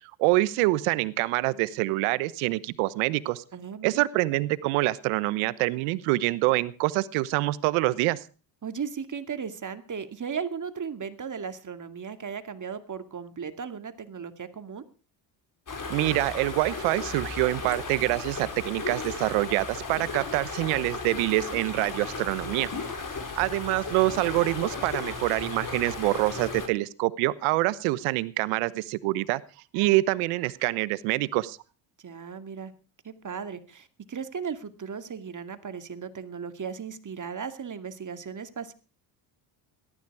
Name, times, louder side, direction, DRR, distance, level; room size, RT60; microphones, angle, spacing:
voice 1, 0.2-3.4 3.8-8.2 15.9-22.7 23.4-29.4 29.7-31.6, right 19 dB, 80° right, 17 dB, 1.2 m, -26 dB
voice 2, 3.5-4.1 8.6-14.9 32.0-32.7 33.0-38.7, right 6 dB, 35° right, 9 dB, 2.4 m, -36 dB
sound 1, 15.7-26.7, left 4 dB, 40° left, 4.8 m, -35 dB
18.5 x 13.0 x 4.8 m, 0.36 s
supercardioid pair, 65°, 50 cm